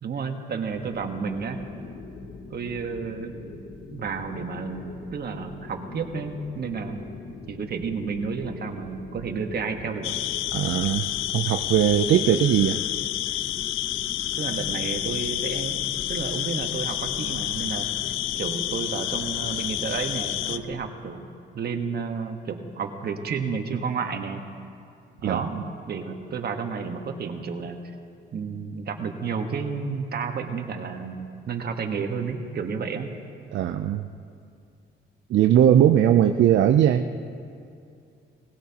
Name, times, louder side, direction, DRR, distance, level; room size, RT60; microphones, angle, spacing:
voice 1, 0.0-1.6 2.5-3.6 3.9-7.0 7.5-10.1 14.3-17.9 18.4-21.2 21.5-24.4 25.2-25.6 25.9-27.9 28.3-33.1, right 5 dB, 55° right, 5 dB, 1.4 m, -31 dB
sound 1, 0.7-20.7, left 4 dB, 70° left, 1.6 m, -42 dB
sound 2, 10.0-20.6, left 13 dB, 90° left, 0.5 m, -29 dB
voice 2, 10.5-12.8 13.3-13.4 25.2-25.6 33.5-34.1 35.3-37.0, right 10 dB, 70° right, 7 dB, 0.6 m, -20 dB
20.0 x 16.5 x 2.9 m, 2.4 s
cardioid pair, 90°, 20 cm